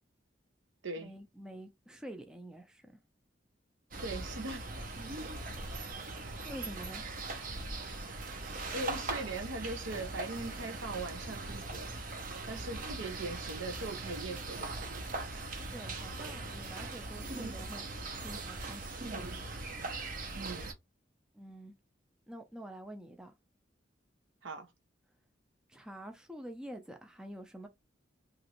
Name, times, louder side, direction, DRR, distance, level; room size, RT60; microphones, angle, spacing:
voice 1, 1.0-3.0 5.5-7.0 12.5-12.6 15.7-17.8 18.2-19.0 21.3-21.7 22.3-23.3 25.7-27.7, equal, 5° right, 0.4 m, -47 dB
sound 1, 3.9-20.7, right 3 dB, 45° right, 0.6 m, -40 dB
voice 2, 4.0-4.7 8.7-11.9 12.5-15.0 20.3-20.7 24.4-24.7, right 3 dB, 85° right, 0.7 m, -40 dB
2.9 x 2.5 x 2.9 m
head